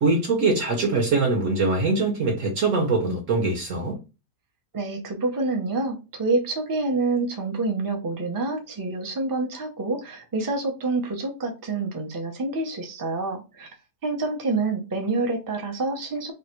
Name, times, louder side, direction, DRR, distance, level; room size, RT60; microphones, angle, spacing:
voice 1, 0.0-4.0, right 3 dB, 55° right, 1.2 m, -23 dB
voice 2, 4.7-13.7 14.0-16.3, right 3 dB, 25° right, 0.4 m, -27 dB
3.1 x 2.5 x 4.4 m
omnidirectional pair, 1.7 m